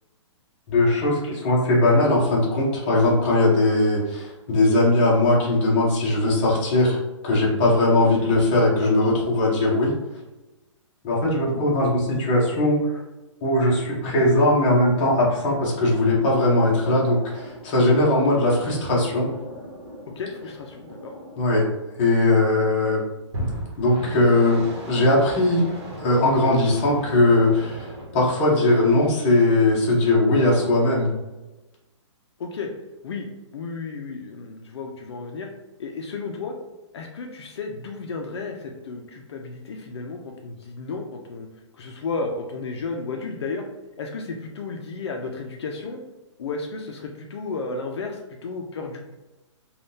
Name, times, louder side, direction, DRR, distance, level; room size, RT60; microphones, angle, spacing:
voice 1, 0.7-7.0 7.2-9.9 11.0-12.9 13.4-19.3 21.4-21.7 22.0-23.0 23.8-25.6 26.0-31.1, left 2 dB, 20° left, -4 dB, 0.7 m, -20 dB
voice 2, 8.0-8.3 20.2-21.1 32.4-32.7 33.0-33.3 33.5-35.5 35.8-36.5 36.9-41.5 41.7-43.6 44.0-46.0 46.4-49.1, left 4 dB, 60° left, 2 dB, 0.4 m, -33 dB
sound 1, 15.9-22.2 23.3-28.2, equal, 55° right, 1.0 m, -37 dB
3.4 x 2.3 x 2.6 m, 1.1 s
hypercardioid pair, 175°, 16 cm